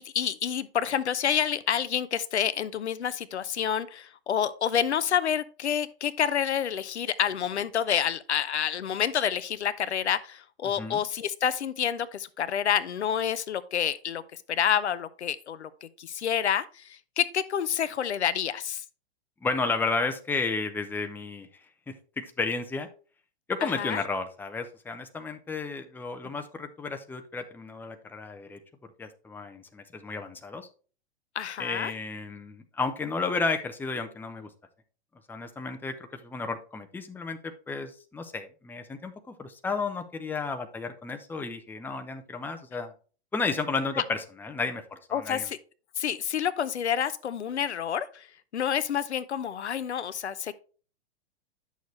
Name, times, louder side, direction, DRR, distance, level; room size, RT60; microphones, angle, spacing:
voice 1, 0.0-14.2 14.5-18.8 23.6-24.0 31.4-31.9 45.1-45.6 46.0-48.3 48.5-50.5, left 9 dB, 80° left, 0.7 m, -28 dB
voice 2, 19.4-21.5 21.9-22.9 23.5-28.6 29.0-30.7 31.6-34.5 35.3-35.9 36.2-42.9 43.3-45.5, left 4 dB, 5° left, 0.7 m, -32 dB
9.2 x 6.5 x 3.1 m
hypercardioid pair, 110°, 33 cm